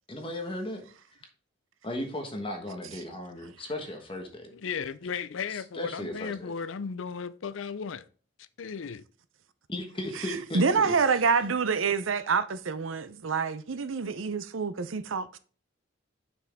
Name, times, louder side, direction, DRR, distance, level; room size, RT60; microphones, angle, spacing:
voice 1, 0.1-0.8 1.8-4.5 5.5-6.5 9.7-10.9, left 1 dB, 25° left, 1.3 m, -36 dB
voice 2, 4.5-8.1 8.4-9.0, left 6 dB, 80° left, 0.5 m, -35 dB
voice 3, 10.2-15.4, right 5 dB, 85° right, 0.6 m, -27 dB
7.0 x 6.0 x 3.5 m
head